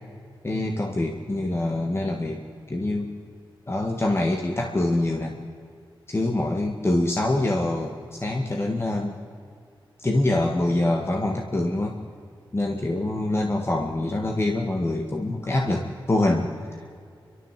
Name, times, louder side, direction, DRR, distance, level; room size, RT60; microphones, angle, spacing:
voice 1, 0.4-3.1 3.7-5.3 6.1-9.2 10.0-12.0 12.5-16.5, left 2 dB, 30° left, 1 dB, 2.0 m, -25 dB
29.5 x 13.0 x 7.7 m, 2.3 s
cardioid pair, 65°, 9 cm